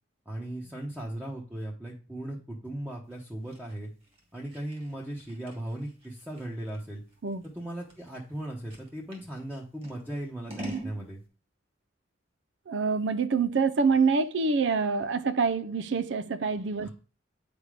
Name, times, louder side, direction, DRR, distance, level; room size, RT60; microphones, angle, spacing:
voice 1, 0.3-3.9 4.3-7.0 7.4-11.2 16.8-16.9, right 1 dB, 10° right, 1.0 m, -37 dB
Scissors, 3.1-9.3 9.8-11.0, right 2 dB, 30° right, 2.0 m, -43 dB
voice 2, 12.7-16.9, right 4 dB, 85° right, 0.5 m, -26 dB
8.7 x 3.5 x 5.0 m
head